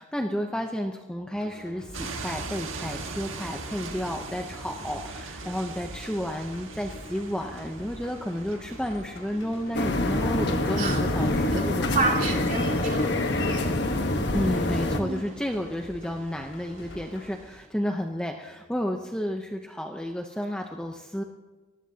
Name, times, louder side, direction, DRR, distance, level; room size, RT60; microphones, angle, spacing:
voice 1, 0.0-12.4 14.3-21.2, equal, 5° left, 3 dB, 0.7 m, -32 dB
sound 1, 1.3-17.3, left 1 dB, 85° left, 5.4 m, -46 dB
sound 2, 1.9-17.7, right 3 dB, 80° right, 1.6 m, -43 dB
sound 3, 9.7-15.0, left 1 dB, 55° left, 1.2 m, -25 dB
voice 2, 11.9-13.7 15.0-15.3, right 3 dB, 40° right, -1 dB, 3.4 m, -29 dB
30.0 x 15.0 x 2.8 m, 1.3 s
head